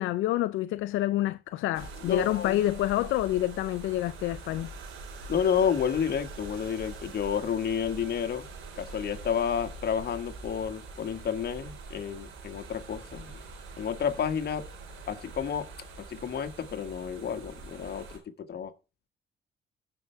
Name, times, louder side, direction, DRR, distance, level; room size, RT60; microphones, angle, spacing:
voice 1, 0.0-4.7, left 15 dB, 75° left, 0.4 m, -28 dB
sound 1, 1.7-18.2, right 3 dB, 85° right, 4.0 m, -44 dB
voice 2, 2.0-2.6 5.3-8.4 8.8-13.3 13.8-14.6 15.1-15.7 16.1-18.2 18.5-18.7, left 7 dB, 55° left, 1.7 m, -30 dB
16.0 x 5.7 x 3.4 m
cardioid pair, 80°, 20 cm